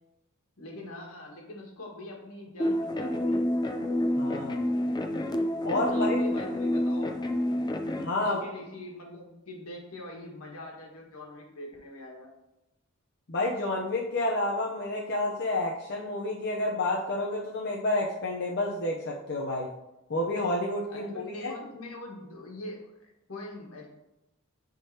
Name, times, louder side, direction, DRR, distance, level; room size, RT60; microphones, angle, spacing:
voice 1, 0.6-3.4 5.9-7.3 8.1-12.3 20.9-23.9, left 2 dB, 80° left, -1 dB, 1.6 m, -43 dB
sound 1, 2.6-8.1, left 1 dB, 20° left, 0.5 m, -28 dB
voice 2, 4.2-4.6 5.6-6.2 8.0-8.4 13.3-19.7 20.1-21.5, left 2 dB, 55° left, -2 dB, 0.7 m, -29 dB
10.0 x 3.8 x 2.8 m, 0.92 s
head